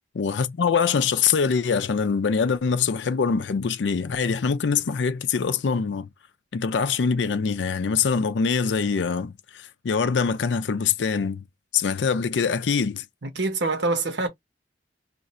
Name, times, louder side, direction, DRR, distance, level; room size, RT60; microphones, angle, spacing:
voice 1, 0.2-6.1 6.5-11.5 11.7-13.0, left 6 dB, 80° left, 0.5 m, -24 dB
voice 2, 13.2-14.3, right 3 dB, 70° right, 1.0 m, -25 dB
2.5 x 2.4 x 4.1 m
head